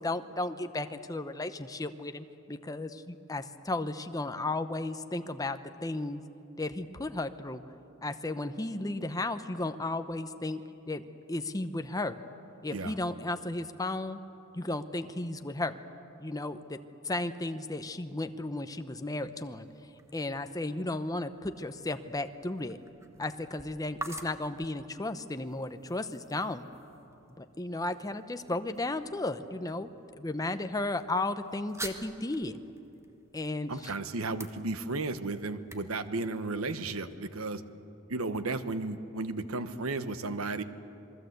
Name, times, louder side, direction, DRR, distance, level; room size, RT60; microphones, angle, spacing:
voice 1, 0.0-6.2 6.6-7.7 8.0-12.2 12.6-14.2 14.5-15.8 16.2-16.8 17.0-22.8 23.2-26.7 27.4-29.9 30.2-32.6 33.3-33.9, left 2 dB, 15° left, 9 dB, 0.8 m, -34 dB
sound 1, 19.3-37.2, right 2 dB, 15° right, 1.3 m, -50 dB
voice 2, 33.7-37.6 38.1-40.6, right 3 dB, 85° right, 11 dB, 1.2 m, -34 dB
27.5 x 20.5 x 8.1 m, 2.8 s
head